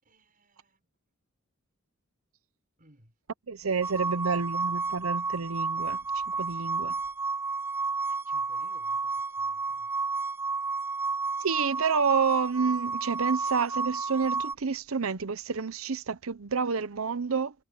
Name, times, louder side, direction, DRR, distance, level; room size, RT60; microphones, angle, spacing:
voice 1, 0.0-0.8 2.8-3.2 3.9-4.3 8.1-9.9, right 1 dB, 40° right, 5.9 m, -60 dB
voice 2, 3.5-6.0 6.4-6.9 11.4-17.5, right 5 dB, 80° right, 0.8 m, -29 dB
sound 1, 3.8-14.6, right 4 dB, 10° right, 0.5 m, -31 dB
head